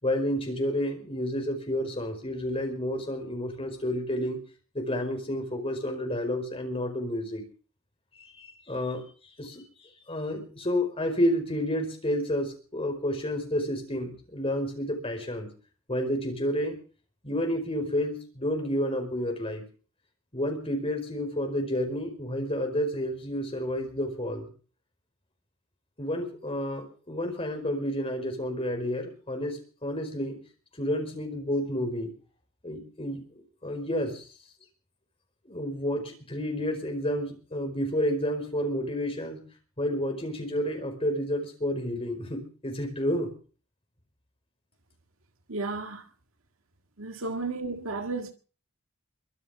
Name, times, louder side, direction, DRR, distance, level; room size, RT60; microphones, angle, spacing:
voice 1, 0.0-4.4 4.7-7.4 8.2-9.0 9.4-9.6 10.1-15.5 15.9-16.8 17.2-19.6 20.3-24.5 26.0-30.4 30.8-32.1 32.6-34.2 35.4-39.5 39.8-43.3 47.2-47.3, equal, 25° left, 5.0 m, -30 dB
voice 2, 45.5-46.1 47.0-48.3, right 3 dB, 70° right, 1.9 m, -33 dB
23.5 x 7.9 x 7.3 m
head